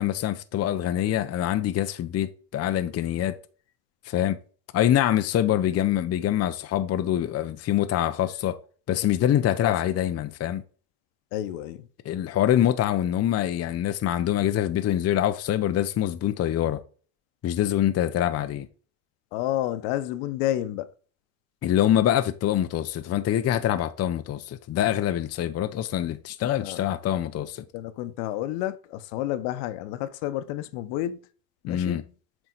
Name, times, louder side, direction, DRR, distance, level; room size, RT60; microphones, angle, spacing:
voice 1, 0.0-3.4 4.0-4.4 4.7-8.6 8.9-10.6 12.0-16.8 17.4-18.7 21.6-27.6 31.7-32.0, left 11 dB, 30° left, 0.7 m, -25 dB
voice 2, 11.3-11.9 19.3-20.9 26.5-26.8 27.7-31.2 31.6-32.0, left 13 dB, 70° left, 1.0 m, -30 dB
7.8 x 4.5 x 4.0 m
supercardioid pair, 95°, 49 cm